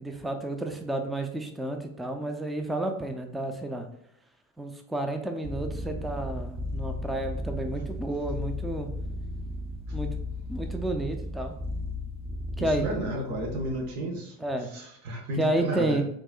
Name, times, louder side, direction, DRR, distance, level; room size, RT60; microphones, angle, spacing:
voice 1, 0.0-3.9 4.6-8.9 9.9-10.1 10.5-11.5 12.6-12.8 14.4-14.7 15.4-16.0, right 1 dB, ahead, 5 dB, 0.3 m, -31 dB
sound 1, 5.4-13.9, left 1 dB, 15° right, 0.8 m, -35 dB
voice 2, 12.6-14.3 14.7-16.0, right 1 dB, 70° right, 1 dB, 0.9 m, -32 dB
4.2 x 2.3 x 2.3 m, 0.76 s
hypercardioid pair, 70°, 37 cm